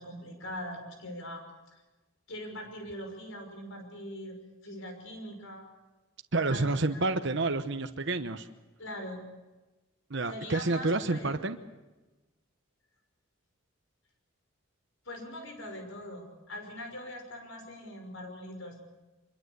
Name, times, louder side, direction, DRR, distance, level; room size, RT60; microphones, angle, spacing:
voice 1, 0.0-1.4 1.7-1.8 2.3-4.4 4.6-5.7 6.5-6.6 6.9-7.1 8.8-9.2 10.3-11.3 15.1-18.8, left 1 dB, 70° left, 5 dB, 6.0 m, -42 dB
voice 2, 6.3-8.5 10.1-11.6, right 2 dB, 55° right, 7 dB, 1.0 m, -29 dB
25.0 x 22.0 x 8.2 m, 1.1 s
head